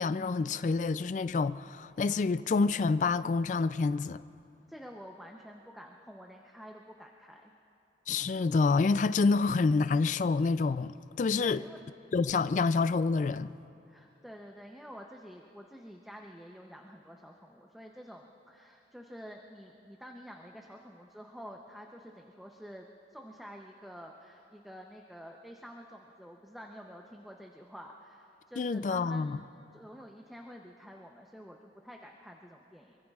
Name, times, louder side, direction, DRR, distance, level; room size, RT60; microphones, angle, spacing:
voice 1, 0.0-4.2 8.1-11.6 12.1-13.6 28.6-29.4, left 4 dB, 45° left, 0.3 m, -28 dB
voice 2, 4.7-7.5 11.4-11.8 13.9-29.4 29.7-33.0, equal, ahead, 0.6 m, -49 dB
25.0 x 24.0 x 2.4 m
head